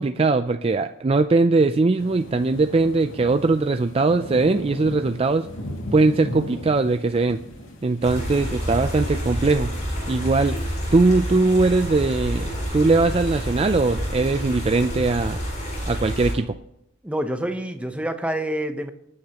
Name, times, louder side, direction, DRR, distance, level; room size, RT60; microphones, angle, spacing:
voice 1, 0.0-5.5 5.9-7.4 7.8-9.7 10.1-10.6 10.9-15.4 15.9-16.6, right 3 dB, 30° right, 8 dB, 0.4 m, -20 dB
sound 1, 2.0-10.3, left 1 dB, 70° left, 2.4 m, -37 dB
sound 2, 8.0-16.3, equal, 35° left, 6.6 m, -28 dB
voice 2, 17.0-18.9, right 1 dB, 5° right, 6 dB, 0.9 m, -27 dB
26.0 x 9.6 x 3.0 m, 0.81 s
head